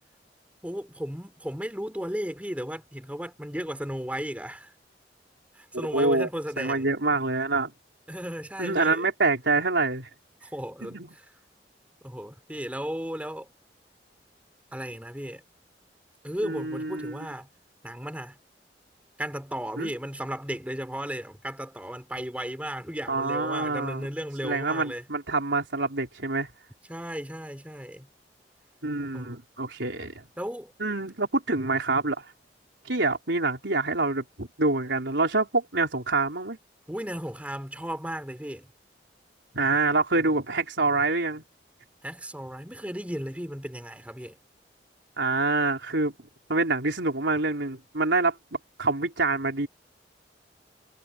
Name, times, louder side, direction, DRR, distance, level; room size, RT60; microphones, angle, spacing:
voice 1, 0.6-4.7 5.5-6.9 8.1-9.0 10.5-11.2 12.0-13.5 14.7-15.4 16.2-17.5 17.8-18.4 19.2-25.0 26.9-28.1 29.1-29.3 30.4-30.7 36.9-38.7 42.0-44.4, equal, 10° right, 5.0 m, -35 dB
voice 2, 5.7-6.3 6.6-7.7 8.6-10.1 10.8-11.1 16.4-17.3 19.8-19.9 23.1-24.1 24.4-26.5 28.8-30.2 30.8-32.3 32.9-36.6 39.5-41.4 45.2-46.1 46.5-49.7, right 3 dB, 80° right, 4.0 m, -26 dB
head